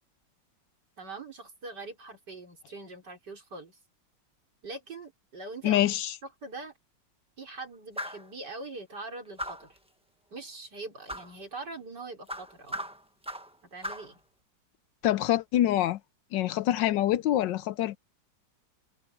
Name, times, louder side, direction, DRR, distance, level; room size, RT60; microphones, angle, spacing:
voice 1, 1.0-3.8 4.6-5.9 6.2-6.7 7.4-9.8 10.3-12.8 13.7-14.2, right 3 dB, 65° right, 5.0 m, -42 dB
voice 2, 5.6-6.1 15.0-16.0 16.3-18.0, left 13 dB, 80° left, 1.3 m, -25 dB
sound 1, 8.0-8.3 9.4-9.8 11.1-11.3 12.3-13.5 13.8-14.1, equal, 5° right, 1.0 m, -37 dB
omnidirectional pair, 1.9 m